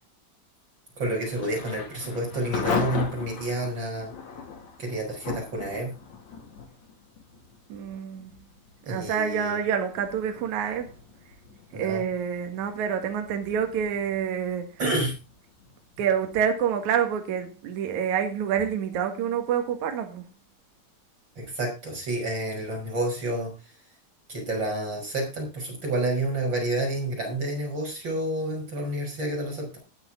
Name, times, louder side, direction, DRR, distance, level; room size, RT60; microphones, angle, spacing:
voice 1, 1.0-4.1 4.8-5.9 8.9-9.6 11.7-12.0 14.8-15.1 21.4-23.5 24.3-29.8, right 1 dB, 30° right, 6.5 m, -29 dB
Thunder / Rain, 1.1-17.8, left 5 dB, 55° left, 3.4 m, -38 dB
voice 2, 7.7-8.3 8.9-10.9 11.7-14.7 16.0-20.2, right 8 dB, 60° right, 2.8 m, -27 dB
19.5 x 6.9 x 3.7 m
omnidirectional pair, 4.3 m